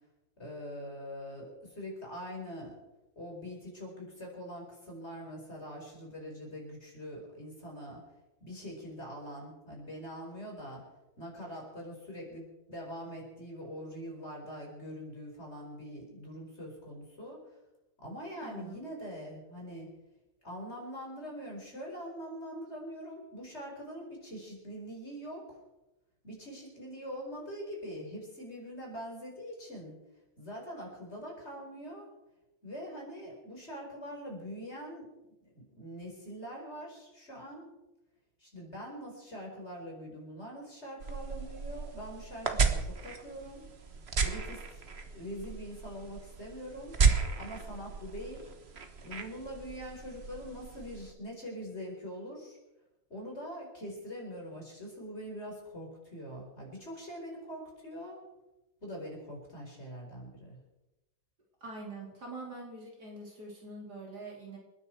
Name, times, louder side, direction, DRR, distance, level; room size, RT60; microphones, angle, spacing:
voice 1, 0.4-2.7 3.1-8.0 8.4-10.8 11.2-17.4 18.0-19.9 20.4-25.6 26.2-30.0 30.4-32.1 32.6-35.1 35.4-37.7 38.4-43.6 44.2-44.8 45.1-46.9 47.4-48.5 49.0-52.6 53.1-58.2 58.8-60.6, equal, 30° left, -1 dB, 5.0 m, -43 dB
voice 2, 18.4-18.8 61.6-64.6, right 2 dB, 55° right, -2 dB, 4.0 m, -44 dB
sound 1, 41.0-51.1, right 5 dB, 35° right, 1.3 m, -34 dB
28.5 x 9.9 x 4.6 m, 0.98 s
omnidirectional pair, 2.1 m